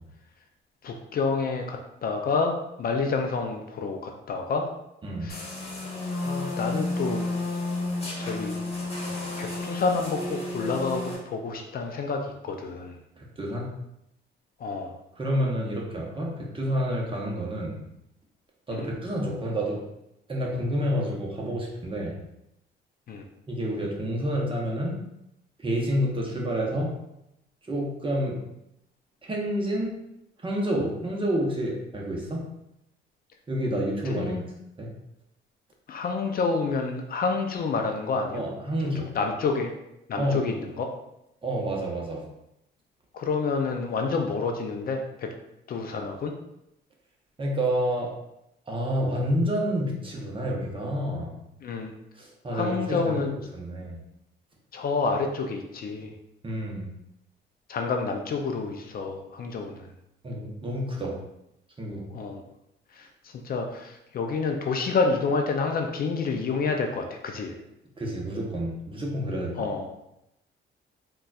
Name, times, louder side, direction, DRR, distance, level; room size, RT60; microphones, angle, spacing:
voice 1, 0.8-4.7 5.2-5.5 6.2-7.3 8.2-8.5 9.4-13.0 14.6-15.0 18.7-18.9 23.1-23.2 34.0-34.4 35.9-38.4 39.0-39.7 40.1-40.9 43.1-45.3 45.7-46.3 51.6-51.9 52.5-53.3 54.7-56.1 57.7-59.9 62.1-62.4 62.9-67.6 69.6-69.9, left 4 dB, 50° left, 3 dB, 0.4 m, -28 dB
sound 1, 5.3-11.2, left 2 dB, 30° left, 1.1 m, -31 dB
voice 2, 13.2-13.7 15.2-17.8 18.7-19.9 20.3-22.2 23.5-25.0 25.6-26.9 27.6-28.4 29.2-30.0 30.4-32.5 33.5-34.4 34.8-34.9 38.3-39.1 40.2-40.4 41.4-42.3 47.4-48.1 48.7-51.4 52.1-54.0 56.4-56.9 60.2-61.2 61.8-62.0 68.0-69.7, equal, 25° right, -2 dB, 0.8 m, -29 dB
3.9 x 2.3 x 2.3 m, 0.85 s
cardioid pair, 90°, 20 cm